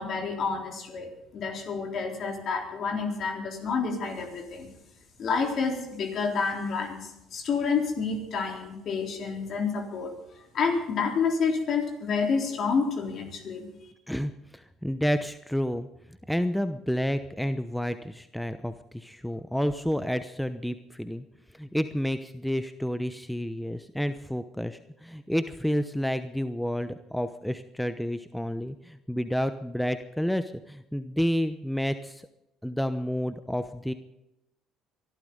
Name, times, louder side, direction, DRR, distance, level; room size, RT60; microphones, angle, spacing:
voice 1, 0.0-4.7 5.2-13.9, left 5 dB, 55° left, 2 dB, 3.8 m, -29 dB
voice 2, 14.1-15.9 16.3-21.2 21.6-32.2 32.6-33.9, equal, ahead, 11 dB, 0.9 m, -30 dB
23.5 x 12.5 x 3.9 m, 0.86 s
hypercardioid pair, 60°, 0 cm